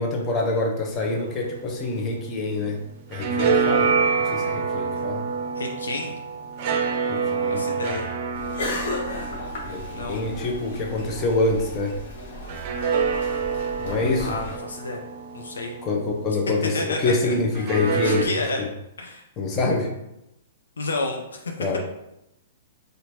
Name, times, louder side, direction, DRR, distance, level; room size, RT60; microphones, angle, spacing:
voice 1, 0.0-3.9 4.2-5.3 7.1-7.7 9.6-12.0 13.8-14.4 15.8-18.3 18.6-18.7 19.4-19.9 21.6-21.8, left 3 dB, 25° left, 1 dB, 0.7 m, -26 dB
sound 1, 1.0-2.6 2.9-11.6 12.5-16.6 17.5-18.2, right 5 dB, 45° right, 0.5 m, -27 dB
voice 2, 5.6-6.1 7.5-8.1 9.9-10.3 14.2-15.0 15.3-15.7 16.6-17.3 18.0-18.6 19.0-19.2 20.8-21.5, left 2 dB, 70° left, 2 dB, 0.6 m, -30 dB
sound 2, 8.3-14.6, left 1 dB, 55° left, 1.0 m, -35 dB
4.3 x 2.5 x 2.8 m, 0.87 s
figure-of-eight pair, 110°, 0 cm